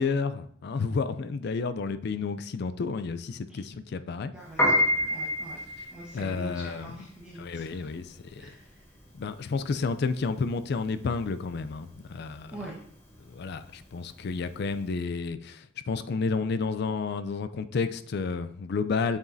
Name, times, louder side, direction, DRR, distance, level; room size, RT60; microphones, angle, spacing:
voice 1, 0.0-4.3 6.1-6.9 7.4-8.1 9.1-12.5 13.3-19.2, left 4 dB, 60° left, 0.4 m, -31 dB
voice 2, 4.3-5.6 5.9-7.9 8.4-8.9 12.5-12.8, right 1 dB, 5° right, 1.3 m, -44 dB
Piano, 4.4-14.8, equal, 15° left, 1.5 m, -30 dB
7.2 x 6.0 x 2.7 m
head